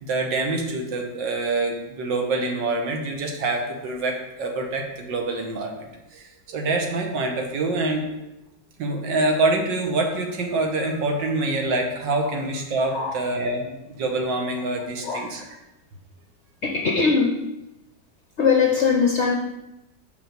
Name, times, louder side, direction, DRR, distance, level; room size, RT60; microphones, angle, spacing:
voice 1, 0.0-8.0 8.8-13.7 14.0-15.5, right 2 dB, 80° right, 2 dB, 1.9 m, -26 dB
voice 2, 16.6-17.4 18.4-19.4, left 5 dB, 60° left, 1 dB, 0.7 m, -21 dB
5.7 x 5.1 x 6.6 m, 0.94 s
omnidirectional pair, 2.0 m